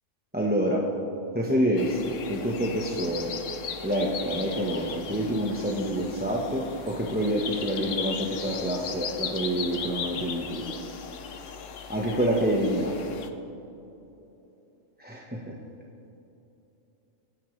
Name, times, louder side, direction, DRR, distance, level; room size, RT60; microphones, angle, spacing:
voice 1, 0.3-0.8 1.3-3.3 3.8-10.6 11.9-13.0 15.0-15.5, equal, 10° right, -3 dB, 1.1 m, -27 dB
sound 1, 1.8-13.3, left 6 dB, 80° left, 1.3 m, -37 dB
25.0 x 10.5 x 3.3 m, 3.0 s
omnidirectional pair, 1.3 m